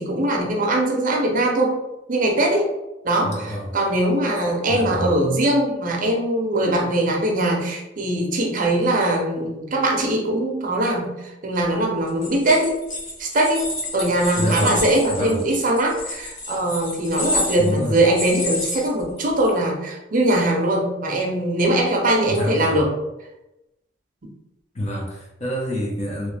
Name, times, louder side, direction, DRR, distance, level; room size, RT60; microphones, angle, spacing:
voice 1, 0.0-1.8 2.1-2.7 3.0-12.7 13.2-22.9, right 1 dB, 45° right, 0 dB, 0.6 m, -21 dB
voice 2, 3.2-3.7 4.7-5.1 14.3-14.8 15.1-15.4 17.6-18.0 22.3-22.8 24.7-26.3, equal, 35° left, -3 dB, 0.9 m, -26 dB
sound 1, 12.1-19.5, left 2 dB, 80° left, 1.2 m, -30 dB
3.1 x 3.0 x 3.3 m, 0.94 s
head